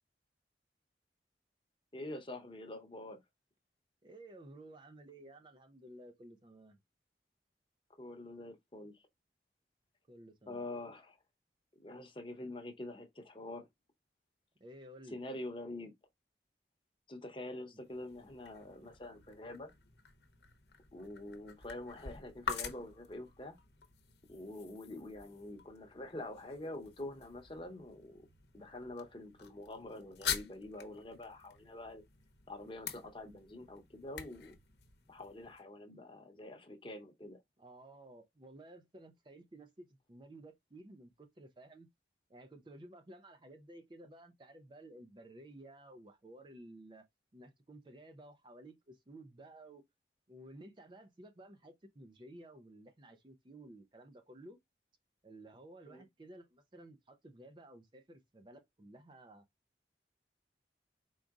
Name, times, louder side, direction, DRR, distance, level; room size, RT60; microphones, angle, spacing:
voice 1, 1.9-3.2 8.0-9.0 10.5-11.2 11.8-13.7 15.1-15.9 17.1-19.7 20.9-23.5 24.3-28.3 28.5-32.0 32.5-34.5 35.1-37.4 55.9-56.0, left 1 dB, 30° left, 0.9 m, -46 dB
voice 2, 4.0-6.8 10.1-10.6 14.6-15.2 17.7-17.8 37.6-41.9 42.3-47.1 47.3-49.8 50.3-54.6 55.2-59.4, right 1 dB, 25° right, 0.4 m, -54 dB
sound 1, 17.8-35.6, left 7 dB, 75° left, 0.9 m, -47 dB
4.8 x 3.8 x 2.4 m
head